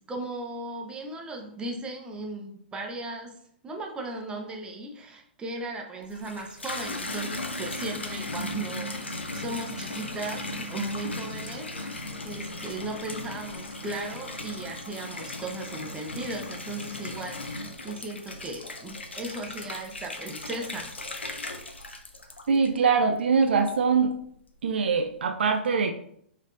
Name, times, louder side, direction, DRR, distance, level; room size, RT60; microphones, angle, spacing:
voice 1, 0.0-3.3 3.6-20.9, right 2 dB, 15° right, 1 dB, 0.8 m, -37 dB
Water tap faucet / Bathtub (filling or washing), 6.0-23.0 23.4-24.0, left 2 dB, 85° left, 0.7 m, -37 dB
voice 2, 22.5-24.1 24.6-25.9, right 5 dB, 65° right, 5 dB, 0.5 m, -23 dB
5.1 x 4.1 x 2.6 m, 0.69 s
figure-of-eight pair, 115°, 6 cm